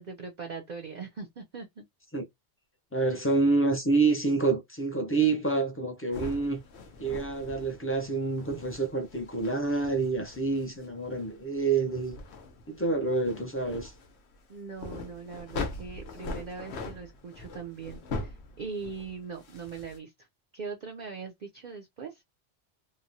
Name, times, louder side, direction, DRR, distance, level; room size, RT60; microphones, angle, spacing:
voice 1, 0.0-1.8 3.1-3.2 13.3-13.5 14.5-20.3 20.5-22.2, right 5 dB, 55° right, 0.6 m, -41 dB
voice 2, 2.9-6.6 7.0-12.1 12.7-13.9, right 3 dB, 15° left, 0.5 m, -27 dB
sound 1, 6.1-20.0, left 3 dB, 85° left, 1.0 m, -42 dB
2.9 x 2.1 x 2.6 m
omnidirectional pair, 1.1 m